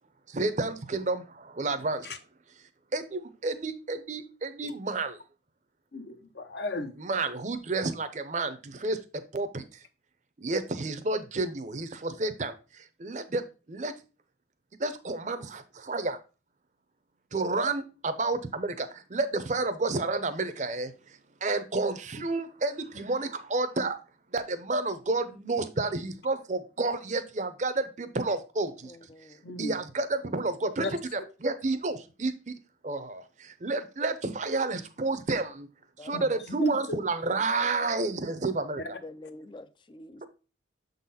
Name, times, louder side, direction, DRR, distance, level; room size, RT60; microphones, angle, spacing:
voice 1, 0.3-2.2 2.9-5.2 7.0-9.0 9.3-9.6 10.4-13.4 13.7-13.9 14.8-16.2 17.3-20.9 21.4-24.0 24.3-28.9 29.6-32.5 32.8-35.7 36.0-39.0 40.2-40.3, right 3 dB, 40° right, 0.6 m, -30 dB
voice 2, 5.9-6.9 29.4-29.7 30.8-30.9 36.1-36.3 36.6-37.0, equal, 60° left, 0.8 m, -32 dB
voice 3, 28.8-29.4 36.0-36.4 38.9-40.3, left 2 dB, 25° left, 0.4 m, -47 dB
7.0 x 4.0 x 4.1 m
head